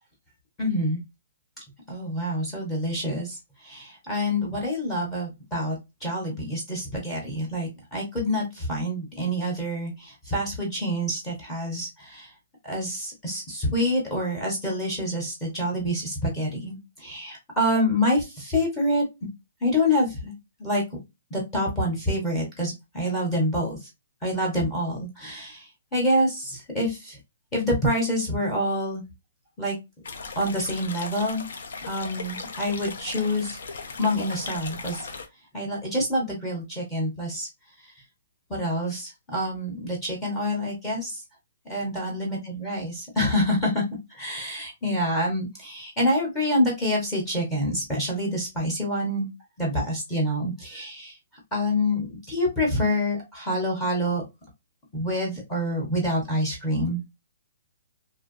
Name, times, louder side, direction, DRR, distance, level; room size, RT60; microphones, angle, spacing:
voice 1, 0.6-1.0 1.9-3.4 3.6-12.3 12.6-19.1 19.6-20.3 20.6-20.8 21.3-23.8 24.2-27.2 27.5-29.0 29.6-29.8 30.4-31.4 31.9-33.6 34.0-35.1 35.5-37.5 38.5-41.2 41.7-43.8 44.1-49.3 49.6-51.2 51.5-54.2 54.9-57.0, equal, 10° left, -2 dB, 0.9 m, -27 dB
sound 1, 30.0-35.3, left 4 dB, 65° left, 0.6 m, -37 dB
2.6 x 2.2 x 2.4 m, 0.22 s
hypercardioid pair, 175°, 0 cm